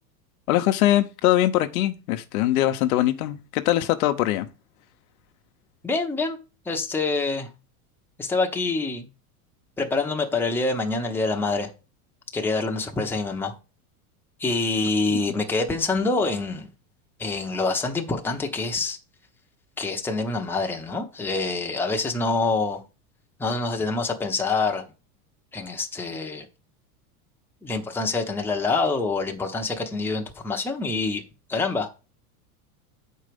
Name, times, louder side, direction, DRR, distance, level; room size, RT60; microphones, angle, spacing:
voice 1, 0.5-4.5 15.1-15.2, left 14 dB, 70° left, 0.9 m, -22 dB
voice 2, 5.8-6.4 6.6-7.5 8.2-9.1 9.8-11.7 12.3-13.5 14.4-16.7 17.2-19.0 19.8-22.8 23.4-24.8 25.5-26.5 27.6-31.2 31.5-31.9, left 3 dB, 5° left, 0.8 m, -26 dB
7.3 x 4.6 x 5.1 m
supercardioid pair, 125°, 44 cm